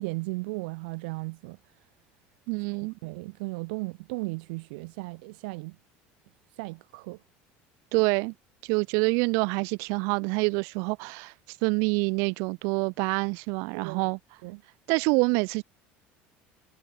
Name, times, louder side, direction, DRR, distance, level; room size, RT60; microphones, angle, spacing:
voice 1, 0.0-1.6 2.7-5.8 6.5-7.2 13.7-14.1 14.4-14.6, right 27 dB, 85° right, 1.0 m, -36 dB
voice 2, 2.5-2.9 7.9-8.3 8.6-14.2 14.9-15.6, right 33 dB, 70° right, 0.4 m, -26 dB
cardioid pair, 135°, 5 cm